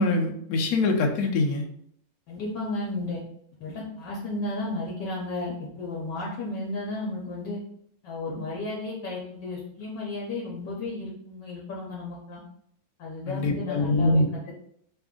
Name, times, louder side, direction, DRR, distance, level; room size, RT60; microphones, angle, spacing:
voice 1, 0.0-1.7 13.3-14.3, left 2 dB, 90° left, 2 dB, 0.7 m, -23 dB
voice 2, 2.3-3.2 3.6-7.6 8.0-12.4 13.0-14.5, left 2 dB, 65° left, -3 dB, 1.2 m, -33 dB
3.3 x 2.5 x 3.5 m, 0.70 s
omnidirectional pair, 2.3 m